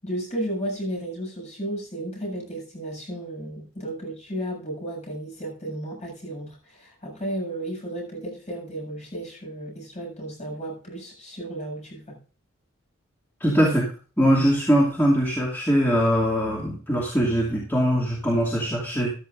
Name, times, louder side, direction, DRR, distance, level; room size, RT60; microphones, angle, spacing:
voice 1, 0.0-12.2, right 1 dB, 35° left, -1 dB, 7.6 m, -33 dB
voice 2, 13.4-13.9 14.2-19.1, equal, 10° left, -6 dB, 2.7 m, -21 dB
14.5 x 13.0 x 2.6 m, 0.39 s
head